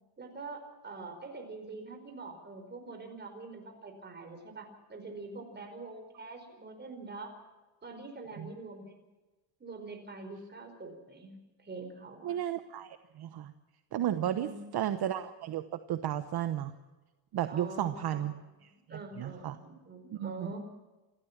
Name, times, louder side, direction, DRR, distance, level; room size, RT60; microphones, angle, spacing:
voice 1, 0.2-7.3 7.8-9.0 9.6-12.4 14.2-14.9 17.5-18.3 18.9-20.6, right 3 dB, 20° right, 4 dB, 4.8 m, -45 dB
voice 2, 12.2-13.5 13.9-16.7 17.3-18.3 18.6-19.6 20.1-20.5, right 11 dB, 55° right, 9 dB, 1.1 m, -34 dB
28.5 x 13.5 x 7.4 m, 1.2 s
cardioid pair, 135°, 47 cm